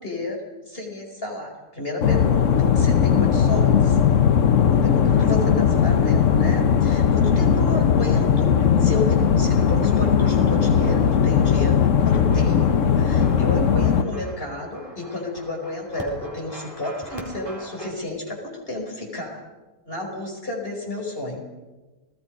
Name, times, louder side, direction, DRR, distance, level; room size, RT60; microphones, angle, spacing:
voice 1, 0.0-4.0 4.7-19.4 19.9-21.4, left 2 dB, 40° left, 1 dB, 5.2 m, -31 dB
sound 1, 2.0-14.0, left 7 dB, 60° left, 1.3 m, -18 dB
sound 2, 5.0-17.9, equal, 15° left, 3.9 m, -43 dB
30.0 x 19.0 x 5.3 m, 1.2 s
omnidirectional pair, 1.6 m